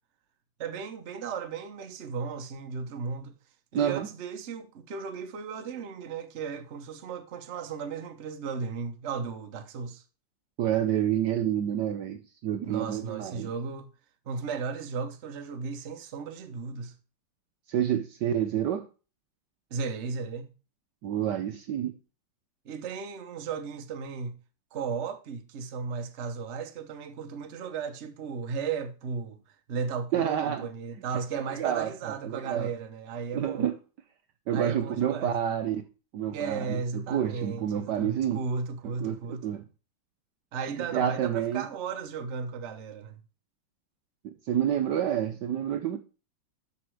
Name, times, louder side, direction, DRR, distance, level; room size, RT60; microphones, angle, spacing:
voice 1, 0.6-3.3 3.7-10.0 12.6-13.9 14.3-16.9 19.7-20.5 22.6-24.3 24.7-33.7 34.5-35.4 36.3-39.4 40.5-43.2, right 5 dB, 45° right, 1.0 m, -35 dB
voice 2, 3.7-4.1 10.6-13.5 17.7-18.9 21.0-21.9 30.1-30.7 31.1-31.2 31.6-32.7 33.3-33.8 34.5-35.8 36.1-38.4 39.0-39.6 40.9-41.6 44.2-46.0, right 10 dB, 70° right, 1.2 m, -28 dB
12.5 x 4.3 x 4.6 m
omnidirectional pair, 2.2 m